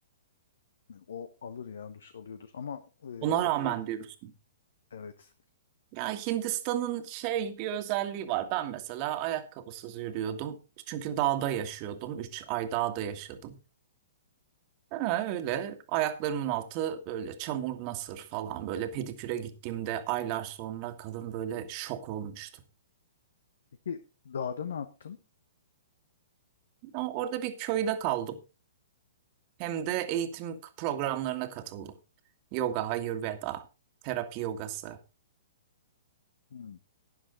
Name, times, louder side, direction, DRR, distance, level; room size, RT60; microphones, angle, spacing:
voice 1, 0.9-3.4 3.6-3.7 4.9-5.3 23.8-25.2 36.5-36.8, left 7 dB, 65° left, 1.1 m, -39 dB
voice 2, 3.2-4.3 5.9-10.6 10.9-13.6 14.9-22.5 26.8-28.4 29.6-31.9 32.5-33.7 34.0-35.0, right 11 dB, 40° right, 1.8 m, -32 dB
12.5 x 10.0 x 4.0 m
figure-of-eight pair, 115°, 0 cm